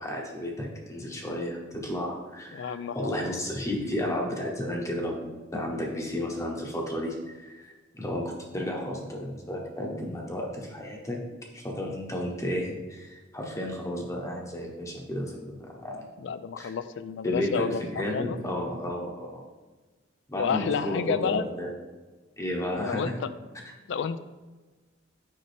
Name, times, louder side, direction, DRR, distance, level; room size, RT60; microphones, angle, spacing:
voice 1, 0.0-11.2 11.5-16.1 16.6-16.7 17.2-19.5 20.3-21.7 22.4-23.2, left 1 dB, 15° left, -1 dB, 0.8 m, -32 dB
voice 2, 2.5-3.2 16.2-18.4 20.4-21.5 22.8-23.3 23.9-24.2, left 6 dB, 65° left, 13 dB, 0.3 m, -30 dB
6.7 x 5.3 x 3.3 m, 1.3 s
head